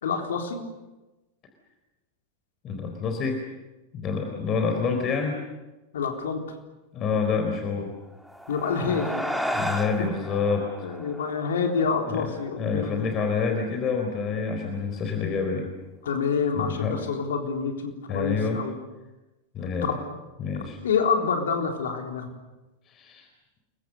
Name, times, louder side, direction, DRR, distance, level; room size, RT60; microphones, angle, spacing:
voice 1, 0.0-0.6 5.9-6.4 8.5-9.2 9.7-9.8 10.8-13.0 16.0-18.8 19.8-20.0 20.8-22.3, left 5 dB, 65° left, 3 dB, 3.8 m, -27 dB
voice 2, 2.6-3.4 3.9-5.4 6.9-7.9 8.8-9.0 9.5-10.7 12.1-12.3 12.6-15.7 16.6-17.0 18.1-18.6 19.5-19.9 20.4-20.8 22.9-23.3, left 5 dB, 30° left, 4 dB, 4.3 m, -27 dB
sound 1, 8.1-12.9, equal, ahead, 2.5 m, -34 dB
30.0 x 23.5 x 6.8 m, 1.1 s
figure-of-eight pair, 90°, 0 cm